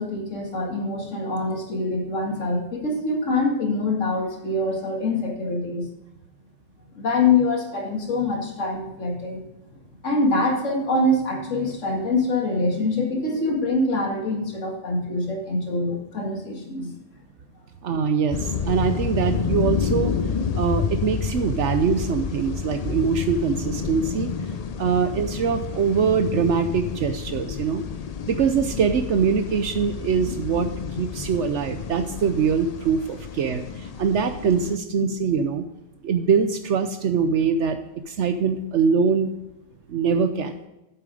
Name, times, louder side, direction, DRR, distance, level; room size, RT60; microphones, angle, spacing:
voice 1, 0.0-5.9 6.9-9.4 10.0-16.9 35.0-35.1, left 2 dB, 80° left, 0 dB, 2.3 m, -24 dB
voice 2, 17.8-20.2 20.5-24.3 24.8-27.8 28.3-35.7 36.0-37.8 38.1-39.3 39.9-40.5, right 6 dB, 70° right, 8 dB, 1.0 m, -23 dB
sound 1, 18.3-34.8, left 6 dB, 55° left, 0.4 m, -29 dB
8.8 x 7.5 x 4.9 m, 0.96 s
omnidirectional pair, 1.3 m